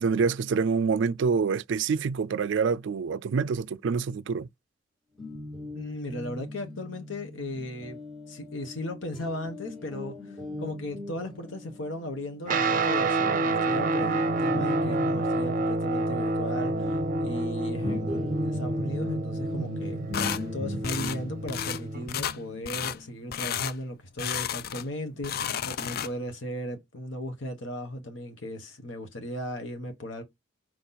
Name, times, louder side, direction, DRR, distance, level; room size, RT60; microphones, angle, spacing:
voice 1, 0.0-4.5, right 5 dB, 65° right, 0.3 m, -26 dB
Guitar, 5.2-12.9 13.2-23.6, equal, ahead, 1.2 m, -39 dB
voice 2, 5.7-8.0 8.3-20.0 20.5-30.2, left 1 dB, 70° left, 1.2 m, -36 dB
Guitar 2, 12.5-22.1, right 2 dB, 45° right, 0.7 m, -28 dB
sound 1, 20.1-20.4 20.8-21.2 21.5-21.8 22.1-22.4 22.6-23.0 23.3-23.7 24.2-24.9 25.2-26.3, left 9 dB, 50° left, 0.4 m, -32 dB
6.3 x 4.1 x 3.9 m
head